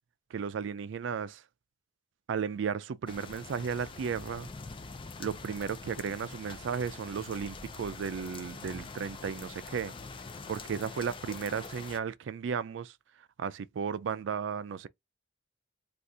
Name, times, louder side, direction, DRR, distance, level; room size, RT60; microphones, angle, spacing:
voice 1, 0.3-1.4 2.3-4.5 5.2-9.9 10.5-13.0 13.4-14.9, right 6 dB, 70° right, 0.3 m, -34 dB
sound 1, 3.1-12.0, left 4 dB, 25° left, 0.4 m, -45 dB
2.7 x 2.4 x 3.4 m
head